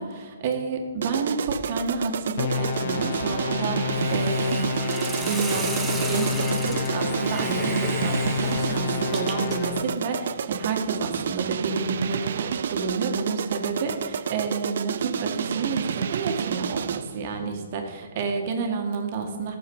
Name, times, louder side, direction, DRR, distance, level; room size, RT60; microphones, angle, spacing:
voice 1, 0.0-4.7 5.0-19.6, right 4 dB, 40° right, 3 dB, 1.9 m, -30 dB
sound 1, 1.0-17.2, right 7 dB, 55° right, 0.4 m, -30 dB
sound 2, 2.4-9.9, left 5 dB, 45° left, 1.1 m, -29 dB
Hiss, 3.9-9.7, right 4 dB, 10° right, 1.0 m, -35 dB
14.5 x 7.0 x 5.6 m, 1.5 s
hypercardioid pair, 160°, 0 cm